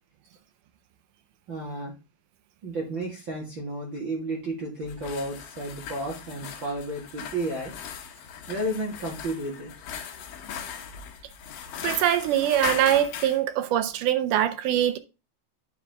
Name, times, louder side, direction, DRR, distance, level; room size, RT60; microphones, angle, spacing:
voice 1, 1.5-1.9 2.6-7.7 8.5-9.7, right 1 dB, 45° right, 1.8 m, -32 dB
sound 1, 4.8-13.4, left 8 dB, 70° left, 2.5 m, -38 dB
voice 2, 11.8-15.0, right 11 dB, 85° right, 1.8 m, -23 dB
10.0 x 4.9 x 3.4 m
omnidirectional pair, 4.6 m